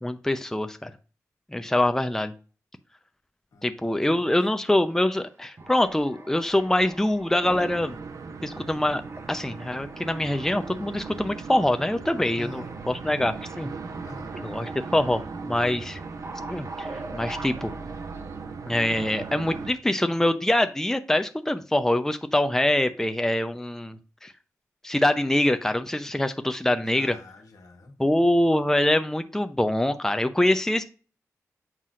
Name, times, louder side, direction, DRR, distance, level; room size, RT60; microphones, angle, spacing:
voice 1, 0.0-0.9 1.5-2.3 3.6-8.0 8.4-9.0 9.3-13.7 14.4-16.0 16.5-17.7 18.7-24.3 24.8-27.2 28.0-30.8, left 1 dB, 10° left, 9 dB, 0.6 m, -24 dB
voice 2, 3.5-4.4 12.3-12.7 14.0-14.3 26.8-28.2, left 2 dB, 85° left, 4 dB, 1.3 m, -46 dB
sound 1, 4.8-5.2 5.6-8.6 9.0-11.2 11.5-11.6 12.5-18.4, right 2 dB, 45° right, 0.9 m, -44 dB
sound 2, 7.4-19.7, right 4 dB, 75° right, 0.7 m, -38 dB
7.5 x 5.3 x 2.5 m, 0.37 s
cardioid pair, 55°, 6 cm